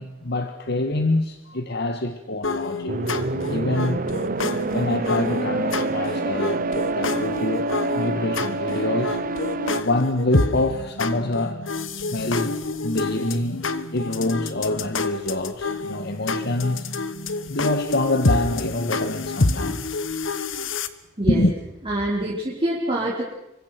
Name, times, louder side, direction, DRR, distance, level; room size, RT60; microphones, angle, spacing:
voice 1, 0.0-3.2 3.5-4.1 4.7-7.7 8.0-9.2 9.7-11.6 12.1-12.6 12.8-13.6 13.9-16.9 17.5-20.0 21.3-21.5, left 1 dB, 55° left, 7 dB, 1.7 m, -26 dB
sound 1, 2.4-20.9, left 3 dB, 80° left, 1.5 m, -28 dB
sound 2, 2.9-9.8, right 3 dB, 45° right, 0.9 m, -27 dB
voice 2, 21.9-23.2, right 1 dB, 25° right, -4 dB, 4.8 m, -25 dB
28.0 x 25.5 x 6.1 m, 0.94 s
head